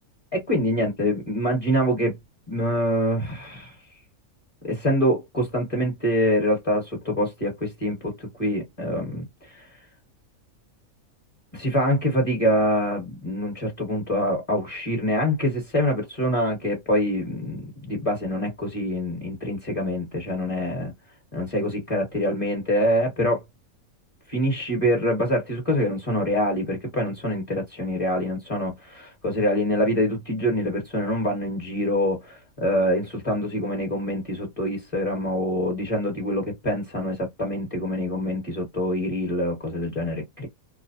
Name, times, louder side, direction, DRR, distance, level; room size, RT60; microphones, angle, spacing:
voice 1, 0.3-2.2 2.5-3.7 4.7-9.7 11.5-20.9 21.3-23.4 24.3-40.5, equal, 25° left, 1.0 m, -25 dB
2.5 x 2.0 x 2.5 m
omnidirectional pair, 1.5 m